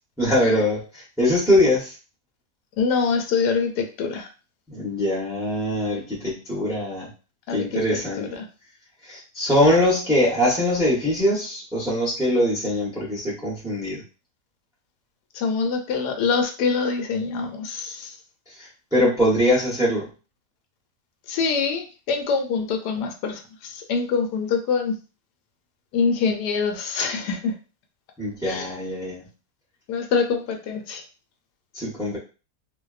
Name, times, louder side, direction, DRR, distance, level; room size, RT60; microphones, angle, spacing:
voice 1, 0.2-1.9 4.7-7.1 7.5-8.3 9.0-14.0 18.6-20.1 28.2-29.2 31.7-32.2, left 1 dB, 5° right, -5 dB, 0.5 m, -22 dB
voice 2, 2.8-4.3 7.5-7.7 7.9-8.5 15.3-18.1 21.3-24.9 25.9-27.5 28.5-28.7 29.9-31.0, left 5 dB, 80° left, 4 dB, 1.1 m, -25 dB
2.6 x 2.2 x 2.3 m, 0.33 s
omnidirectional pair, 1.7 m